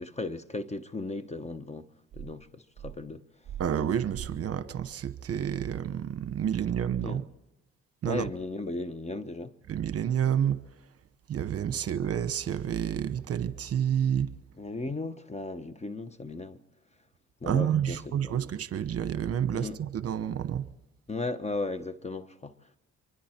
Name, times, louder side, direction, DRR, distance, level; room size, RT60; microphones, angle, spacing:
voice 1, 0.0-1.9 2.1-3.2 6.9-7.2 8.0-9.5 14.6-16.6 17.4-18.0 18.2-18.4 19.5-19.8 21.1-22.5, left 3 dB, 20° left, 1.0 m, -36 dB
voice 2, 3.6-7.2 8.0-8.3 9.7-10.6 11.3-14.3 17.4-20.7, right 9 dB, 50° right, 1.1 m, -29 dB
24.5 x 24.0 x 4.5 m
cardioid pair, 90°, 30 cm